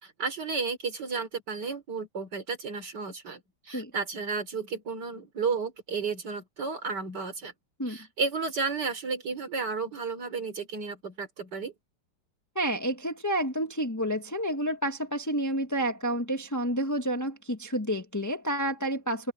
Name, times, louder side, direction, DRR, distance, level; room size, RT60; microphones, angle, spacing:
voice 1, 0.0-7.5 7.9-11.7, right 4 dB, 70° right, 4.1 m, -33 dB
voice 2, 12.5-19.3, right 1 dB, 10° left, 1.4 m, -29 dB
open air
omnidirectional pair, 1.9 m